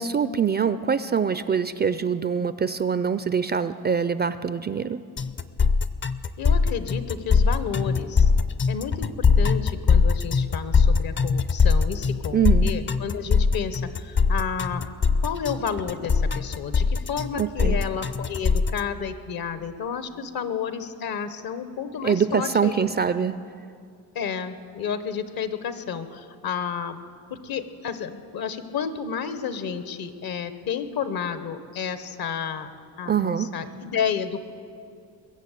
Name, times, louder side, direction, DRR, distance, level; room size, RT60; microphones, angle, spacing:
voice 1, 0.0-5.0 12.3-12.7 17.4-17.8 22.0-23.3 33.1-33.5, right 7 dB, 25° right, 14 dB, 0.4 m, -24 dB
sound 1, 5.2-18.8, left 5 dB, 30° left, 0.5 m, -21 dB
voice 2, 6.4-8.3 8.7-14.8 15.2-22.9 24.1-27.0 27.4-32.7 33.0-34.4, left 7 dB, 65° left, 11 dB, 1.2 m, -31 dB
21.5 x 7.4 x 8.3 m, 2.3 s
cardioid pair, 90°, 39 cm